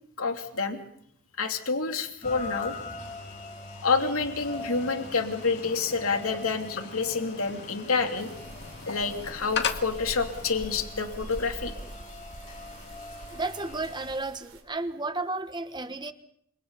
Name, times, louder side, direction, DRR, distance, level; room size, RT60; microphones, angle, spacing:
voice 1, 0.2-0.8 1.4-2.7 3.8-8.3 8.9-11.7, left 4 dB, 75° left, 4 dB, 2.9 m, -28 dB
Rain, 2.2-14.2, left 3 dB, 35° left, 4.9 m, -43 dB
sound 1, 4.3-10.8, left 6 dB, 50° left, 2.0 m, -38 dB
sound 2, 8.1-14.6, right 1 dB, 70° right, 3.2 m, -45 dB
voice 2, 13.3-16.1, right 2 dB, 20° right, 10 dB, 1.1 m, -33 dB
30.0 x 27.0 x 4.1 m, 0.71 s
head